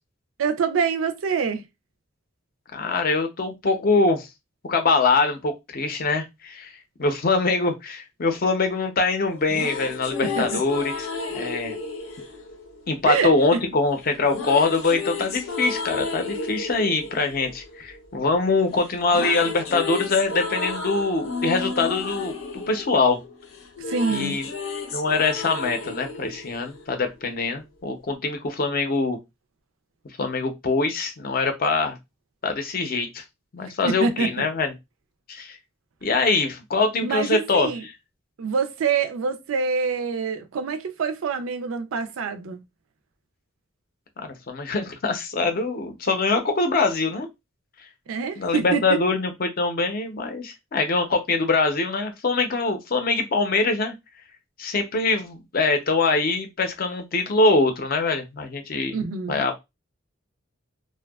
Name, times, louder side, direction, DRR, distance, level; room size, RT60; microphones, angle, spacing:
voice 1, 0.4-1.6 10.2-10.6 13.1-13.6 23.9-24.4 33.8-34.3 37.0-37.8 38.4-42.6 48.1-49.0 58.9-59.5, right 5 dB, 85° right, 0.4 m, -26 dB
voice 2, 2.7-4.3 4.6-6.7 7.0-11.1 11.3-11.8 12.9-23.2 24.1-24.5 24.9-29.2 30.2-32.0 32.4-33.2 33.5-34.7 35.3-35.6 36.0-37.7 44.2-47.3 48.4-53.9 54.6-59.0 59.3-59.6, left 3 dB, 45° left, 0.5 m, -23 dB
sound 1, 9.3-13.4 14.3-18.5 18.8-27.3, left 4 dB, 85° left, 0.7 m, -33 dB
2.6 x 2.2 x 2.2 m
head